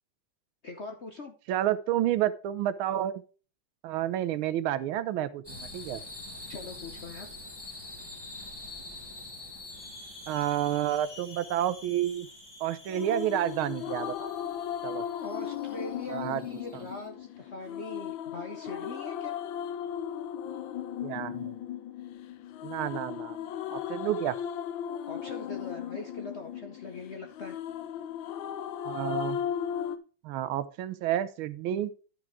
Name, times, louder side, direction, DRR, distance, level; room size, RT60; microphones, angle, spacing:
voice 1, 0.6-1.3 6.5-7.3 15.2-19.4 25.1-27.6, left 3 dB, 50° left, 3 dB, 0.9 m, -42 dB
voice 2, 1.5-3.2 3.8-6.0 10.3-12.3 12.6-14.3 14.8-15.0 16.1-16.4 16.7-16.8 21.0-21.5 22.6-24.4 28.8-29.4 30.2-31.9, right 12 dB, 80° right, 14 dB, 1.4 m, -30 dB
sound 1, 5.4-17.1, left 2 dB, 15° left, 1.4 m, -46 dB
sound 2, 12.9-30.0, left 9 dB, 70° left, 1.4 m, -36 dB
11.5 x 4.8 x 4.7 m, 0.37 s
omnidirectional pair, 2.3 m